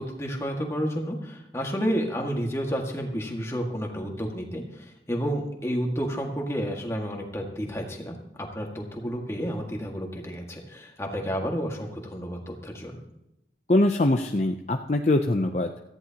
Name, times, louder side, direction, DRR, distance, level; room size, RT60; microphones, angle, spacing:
voice 1, 0.0-13.0, equal, 15° left, 1 dB, 1.9 m, -31 dB
voice 2, 13.7-15.7, left 2 dB, 40° left, 4 dB, 0.6 m, -23 dB
17.5 x 14.0 x 2.9 m, 0.87 s
head